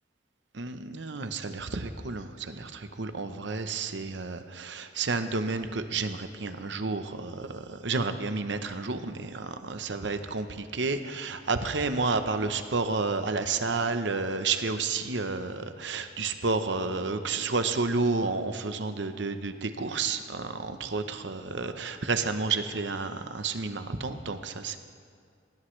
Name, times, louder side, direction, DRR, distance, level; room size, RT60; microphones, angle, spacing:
voice 1, 0.5-24.8, right 4 dB, 70° right, 9 dB, 0.9 m, -31 dB
19.5 x 16.5 x 3.3 m, 2.3 s
head